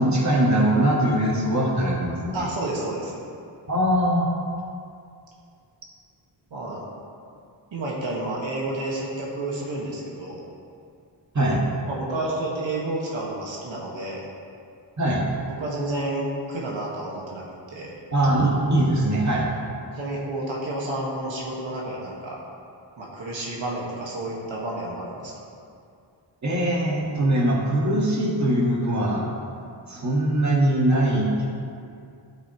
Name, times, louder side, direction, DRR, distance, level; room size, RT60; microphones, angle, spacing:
voice 1, 0.0-2.5 3.7-4.3 11.3-11.6 15.0-15.3 18.1-19.5 26.4-29.3 29.9-31.4, right 1 dB, 40° right, -3 dB, 1.8 m, -21 dB
voice 2, 2.3-3.2 6.5-6.8 7.7-10.4 11.9-14.2 15.6-17.9 19.9-22.4 23.0-25.3, right 2 dB, 80° right, -4 dB, 1.7 m, -30 dB
11.5 x 8.0 x 3.1 m, 2.4 s
wide cardioid pair, 90°, 45 cm